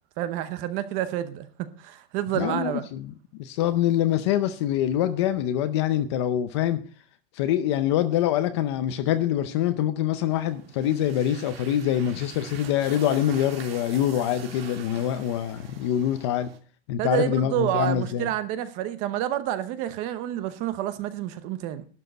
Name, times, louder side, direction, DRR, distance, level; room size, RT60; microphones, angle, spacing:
voice 1, 0.2-2.9 17.0-21.9, right 11 dB, 25° right, 0.8 m, -29 dB
voice 2, 2.3-6.8 7.3-16.5 16.9-18.3, left 11 dB, 25° left, 0.6 m, -25 dB
sound 1, 10.2-16.6, right 9 dB, 65° right, 2.8 m, -45 dB
12.0 x 6.4 x 9.0 m
supercardioid pair, 175°, 32 cm